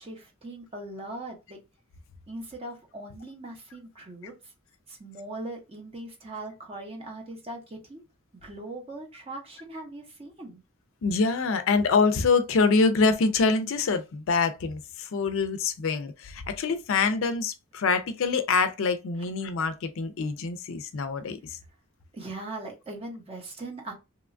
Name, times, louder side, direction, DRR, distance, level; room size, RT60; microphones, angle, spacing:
voice 1, 0.0-1.6 2.3-4.3 4.9-8.0 8.3-10.6 22.1-23.9, right 2 dB, 25° right, 0.7 m, -40 dB
voice 2, 11.0-21.6, left 4 dB, 60° left, 0.4 m, -25 dB
2.9 x 2.2 x 2.4 m
head